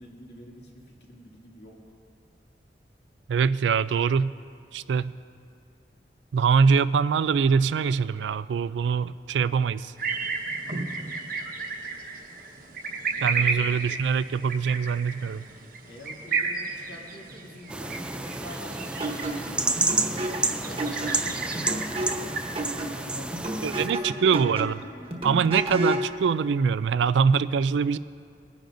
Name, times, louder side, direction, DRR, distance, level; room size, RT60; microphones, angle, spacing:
voice 1, 0.0-1.8 13.1-13.6 15.9-22.2 22.7-24.5, equal, 65° left, -4 dB, 2.4 m, -45 dB
voice 2, 3.3-4.3 4.7-5.1 6.3-9.9 13.2-15.4 23.6-24.8 25.2-28.0, right 6 dB, 90° right, 16 dB, 0.3 m, -23 dB
sound 1, 10.0-22.6, right 4 dB, 55° right, 1.1 m, -33 dB
sound 2, 17.7-23.9, right 2 dB, 5° right, 0.3 m, -30 dB
sound 3, 19.0-26.1, right 1 dB, 30° right, 1.2 m, -32 dB
22.5 x 10.0 x 2.6 m, 2.3 s
head